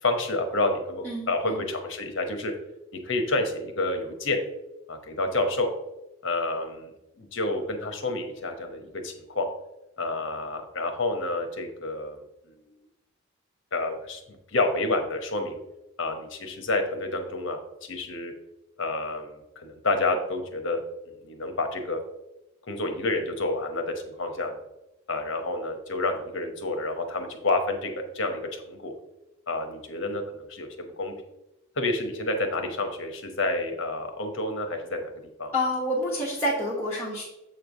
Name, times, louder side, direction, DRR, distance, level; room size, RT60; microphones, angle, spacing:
voice 1, 0.0-2.5 3.0-4.4 4.9-5.7 6.2-9.5 10.0-12.2 12.5-12.7 13.7-15.6 16.0-18.3 18.8-20.8 21.2-22.0 22.6-24.6 25.1-28.9 29.5-31.1 31.8-35.1 35.4-35.5, left 2 dB, 55° left, 5 dB, 0.9 m, -29 dB
voice 2, 1.0-1.6 35.5-37.2, left 1 dB, 10° left, -6 dB, 1.1 m, -28 dB
7.5 x 3.2 x 5.3 m, 0.92 s
head